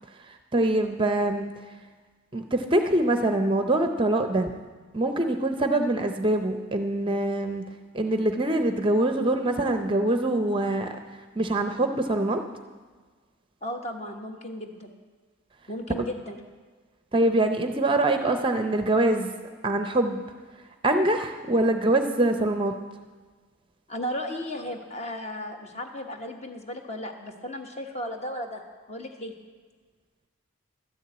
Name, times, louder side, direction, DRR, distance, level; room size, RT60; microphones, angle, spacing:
voice 1, 0.5-1.5 2.3-4.5 4.9-7.6 7.9-11.0 11.4-12.4 17.1-19.3 19.6-20.2 20.8-22.7, right 1 dB, 25° right, 6 dB, 0.5 m, -24 dB
voice 2, 13.6-14.9 15.7-16.4 23.9-28.6 28.9-29.3, left 1 dB, 30° left, 3 dB, 1.1 m, -35 dB
12.5 x 7.1 x 8.5 m, 1.5 s
head